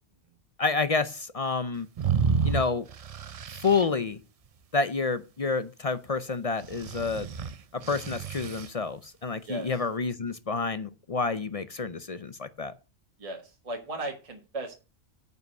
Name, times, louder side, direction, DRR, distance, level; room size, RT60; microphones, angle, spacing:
voice 1, 0.6-1.9 2.4-2.8 3.6-4.2 4.7-7.3 7.8-12.7, left 4 dB, 45° left, 0.5 m, -29 dB
sound 1, 2.0-3.8 6.6-8.7, right 6 dB, 70° right, 0.3 m, -30 dB
voice 2, 13.2-14.7, right 2 dB, 30° right, 1.5 m, -36 dB
9.1 x 5.7 x 6.4 m
omnidirectional pair, 1.3 m